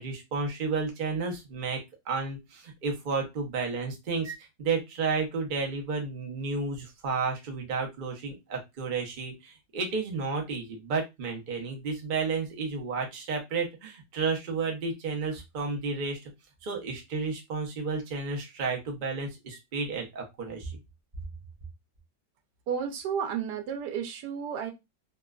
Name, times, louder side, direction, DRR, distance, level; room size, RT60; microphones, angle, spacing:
voice 1, 0.0-1.8 2.1-16.3 16.6-20.7, right 4 dB, 90° right, 1 dB, 0.4 m, -32 dB
voice 2, 22.7-24.7, right 7 dB, 75° right, 3 dB, 1.1 m, -32 dB
2.9 x 2.2 x 2.3 m, 0.22 s
omnidirectional pair, 1.9 m